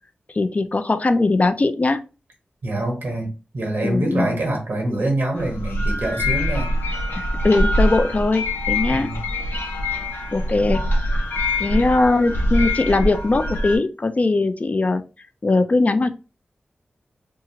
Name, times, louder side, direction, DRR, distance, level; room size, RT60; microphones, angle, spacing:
voice 1, 0.3-2.0 3.8-4.4 7.2-9.1 10.3-10.8 11.6-15.0 15.4-16.1, left 3 dB, 40° left, 10 dB, 0.4 m, -20 dB
voice 2, 2.6-6.7 8.9-9.2, right 1 dB, 70° right, 1 dB, 1.2 m, -25 dB
sound 1, 5.4-13.8, left 1 dB, 85° left, 0.7 m, -24 dB
2.7 x 2.4 x 2.8 m, 0.32 s
cardioid pair, 45°, 4 cm